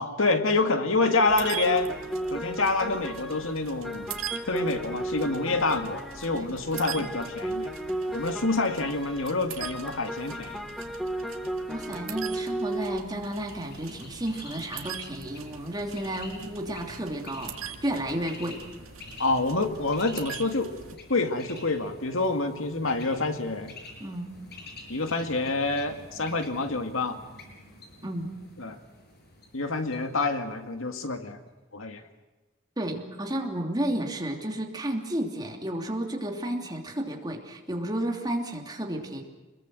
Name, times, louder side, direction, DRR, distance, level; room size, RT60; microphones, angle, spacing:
voice 1, 0.0-1.9 2.3-4.1 4.5-7.7 8.1-10.6 19.2-20.7 21.1-23.7 24.9-27.2 28.6-28.8 29.5-31.4 31.7-32.0, left 3 dB, 75° left, 7 dB, 2.2 m, -27 dB
sound 1, 1.0-13.0, right 1 dB, ahead, 1.2 m, -35 dB
sound 2, 1.3-21.0, right 8 dB, 80° right, 2.0 m, -42 dB
voice 2, 11.7-18.6 24.0-24.4 28.0-28.4 32.8-39.2, right 1 dB, 20° right, 2 dB, 3.0 m, -32 dB
Bird, 13.2-30.9, left 2 dB, 50° left, 6.8 m, -48 dB
27.5 x 21.5 x 7.8 m, 1.2 s
head